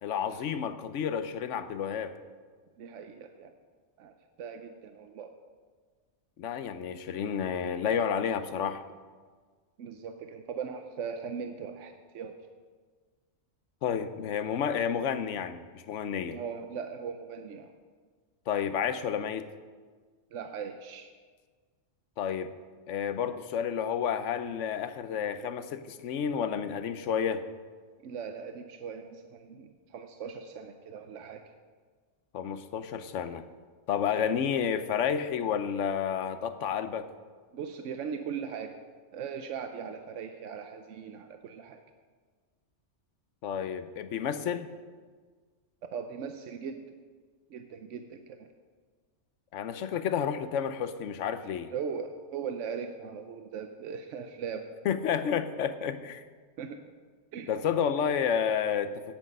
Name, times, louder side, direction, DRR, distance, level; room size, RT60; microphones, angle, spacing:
voice 1, 0.0-2.1 6.4-8.8 13.8-16.4 18.5-19.5 22.2-22.5 22.9-27.4 32.3-33.4 33.9-37.1 43.4-44.7 49.5-51.7 54.8-56.2 57.5-59.2, left 7 dB, 85° left, 11 dB, 1.0 m, -30 dB
voice 2, 2.8-3.5 4.0-5.3 9.8-12.4 16.2-17.7 20.3-21.1 28.0-31.4 37.5-38.8 39.1-41.8 45.9-46.9 47.5-48.5 51.7-54.7 56.6-56.8 57.3-57.5, right 6 dB, 85° right, 7 dB, 1.0 m, -39 dB
17.0 x 6.2 x 5.3 m, 1.5 s
omnidirectional pair, 1.2 m